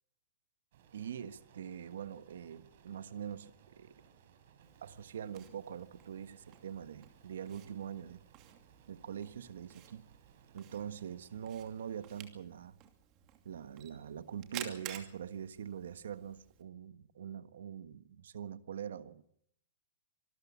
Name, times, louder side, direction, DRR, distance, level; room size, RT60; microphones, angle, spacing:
sound 1, 0.7-12.1, right 8 dB, 60° right, 4.2 m, -63 dB
voice 1, 0.9-4.0 4.8-8.2 8.9-10.1 10.5-12.8 13.4-19.4, right 8 dB, 85° right, 1.4 m, -44 dB
Camera, 4.6-16.6, right 11 dB, 30° right, 2.6 m, -53 dB
25.0 x 13.5 x 8.5 m
hypercardioid pair, 160°, 0 cm